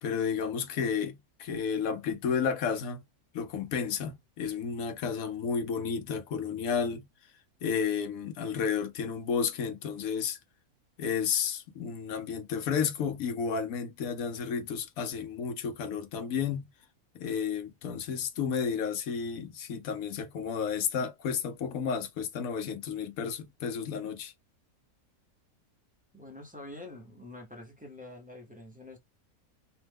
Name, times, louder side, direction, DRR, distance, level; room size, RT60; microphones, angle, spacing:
voice 1, 0.0-3.0 3.3-7.1 7.6-10.4 11.0-16.7 17.1-24.3, left 6 dB, 70° left, 1.0 m, -32 dB
voice 2, 26.1-29.0, left 2 dB, 10° right, 0.4 m, -46 dB
3.0 x 2.0 x 3.4 m
omnidirectional pair, 1.6 m